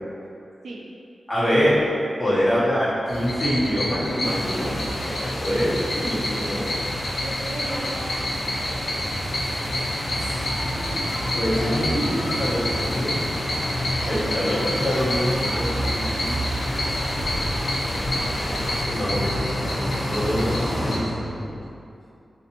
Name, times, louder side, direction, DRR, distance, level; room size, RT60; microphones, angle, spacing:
voice 1, 1.3-1.8 2.2-6.7 10.1-10.5 11.3-13.3 14.0-16.6 18.9-21.6, equal, 15° left, -10 dB, 1.2 m, -25 dB
voice 2, 2.4-2.8 7.2-8.1 17.8-19.1, right 2 dB, 85° right, -1 dB, 0.4 m, -38 dB
sound 1, 3.1-21.0, left 1 dB, 60° left, 0.7 m, -27 dB
sound 2, 4.2-18.9, left 1 dB, 35° left, 0.4 m, -34 dB
4.1 x 2.5 x 2.9 m, 2.5 s
wide cardioid pair, 90°, 0 cm